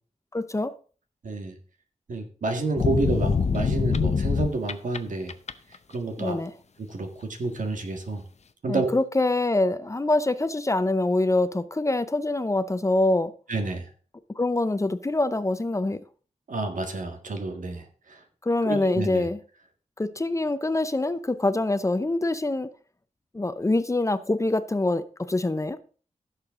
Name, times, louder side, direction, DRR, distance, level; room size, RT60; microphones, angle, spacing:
voice 1, 0.3-0.7 6.2-6.5 8.7-13.3 14.4-16.0 18.4-19.4 20.0-22.7 23.3-25.8, left 2 dB, 25° left, 0.6 m, -25 dB
voice 2, 1.2-1.6 2.1-5.3 5.9-6.4 6.8-8.2 8.6-8.9 13.5-13.8 16.5-17.8 18.6-19.3, right 3 dB, 85° right, 1.7 m, -29 dB
sound 1, 2.8-5.0 5.3-5.8, left 5 dB, 60° left, 0.7 m, -24 dB
15.5 x 6.7 x 3.7 m
wide cardioid pair, 115°, 13 cm